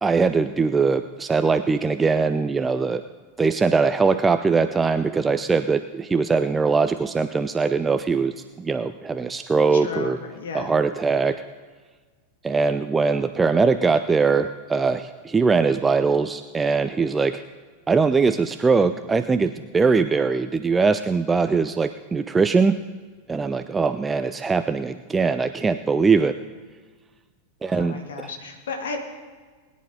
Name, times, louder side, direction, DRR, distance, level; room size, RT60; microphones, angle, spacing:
voice 1, 0.0-3.0 3.4-10.2 10.5-11.4 12.4-17.4 17.9-22.8 23.3-26.4 27.6-28.0, right 4 dB, 15° right, 10 dB, 0.4 m, -21 dB
voice 2, 9.7-10.7 27.7-29.0, left 4 dB, 60° left, 3 dB, 2.2 m, -33 dB
21.0 x 10.5 x 3.8 m, 1.4 s
figure-of-eight pair, 90°, 0 cm